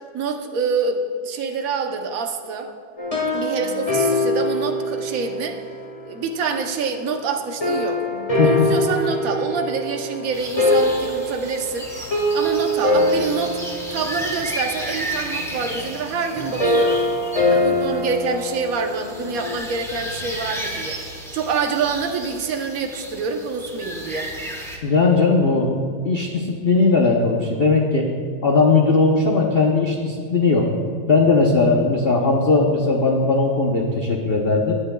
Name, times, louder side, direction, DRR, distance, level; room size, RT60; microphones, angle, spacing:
voice 1, 0.1-2.7 3.3-5.6 6.0-8.0 8.4-11.9 12.3-13.6 13.9-17.0 17.5-21.0 21.3-24.3, right 5 dB, 55° right, 3 dB, 1.0 m, -26 dB
sound 1, 3.0-6.3 7.6-19.6, left 1 dB, 20° left, 1.5 m, -23 dB
voice 2, 8.4-8.7 24.8-28.1 28.4-30.7 31.1-34.7, left 3 dB, 70° left, -1 dB, 0.5 m, -18 dB
sound 2, 10.3-24.8, equal, 5° left, 0.6 m, -33 dB
17.5 x 9.9 x 2.3 m, 2.1 s
omnidirectional pair, 2.3 m